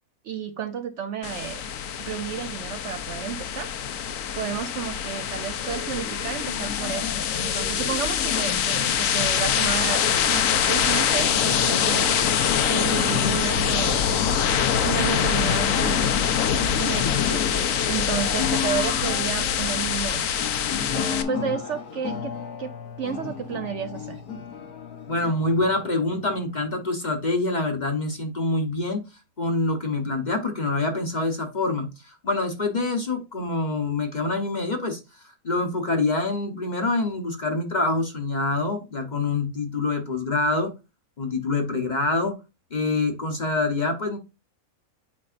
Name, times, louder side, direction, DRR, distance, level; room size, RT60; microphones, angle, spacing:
voice 1, 0.2-1.6 2.0-3.7 4.4-12.2 12.7-14.2 14.8-16.2 16.8-17.4 17.9-20.3 20.9-22.3 22.6-22.7 23.0-24.2, right 8 dB, 65° right, 0.8 m, -31 dB
sound 1, 1.2-21.2, left 8 dB, 65° left, 1.1 m, -24 dB
sound 2, 12.1-26.8, left 7 dB, 90° left, 1.6 m, -36 dB
voice 2, 25.1-29.0 29.4-40.7 41.2-42.3 42.7-44.2, left 2 dB, 35° left, 0.9 m, -26 dB
8.6 x 5.3 x 2.5 m
omnidirectional pair, 1.6 m